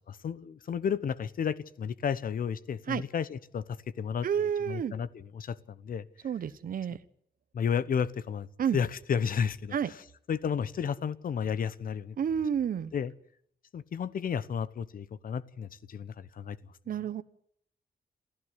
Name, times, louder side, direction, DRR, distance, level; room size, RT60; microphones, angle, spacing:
voice 1, 0.2-4.3 4.7-6.1 7.5-8.5 8.7-9.8 10.3-12.2 12.9-13.1 13.7-16.6, left 7 dB, 55° left, 1.0 m, -32 dB
voice 2, 4.2-4.9 6.2-7.0 8.6-8.8 9.7-9.9 12.2-12.9 16.9-17.2, right 8 dB, 55° right, 1.0 m, -30 dB
27.5 x 14.5 x 9.7 m
wide cardioid pair, 180°, 17 cm